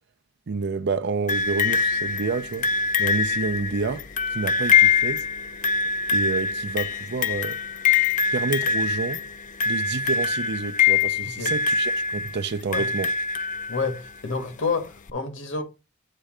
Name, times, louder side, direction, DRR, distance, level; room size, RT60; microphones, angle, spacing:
voice 1, 0.5-2.7 3.0-4.0 4.3-5.2 6.1-7.6 8.3-9.2 9.7-13.1, right 4 dB, 55° right, 0.5 m, -29 dB
sound 1, 1.3-14.1 15.1-15.2, left 6 dB, 40° left, 0.5 m, -24 dB
voice 2, 11.2-11.5 12.7-12.9 13.7-15.6, left 4 dB, 65° left, 1.5 m, -29 dB
8.4 x 3.4 x 4.9 m
head